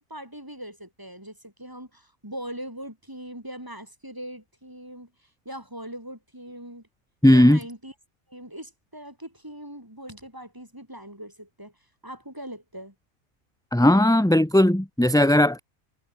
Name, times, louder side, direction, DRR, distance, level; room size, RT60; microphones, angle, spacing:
voice 1, 0.0-5.1 5.5-6.8 7.3-7.9 8.3-11.7 12.0-12.9, equal, 15° right, 5.8 m, -40 dB
voice 2, 7.2-7.6 13.7-15.6, left 1 dB, 5° left, 1.0 m, -17 dB
omnidirectional pair, 1.4 m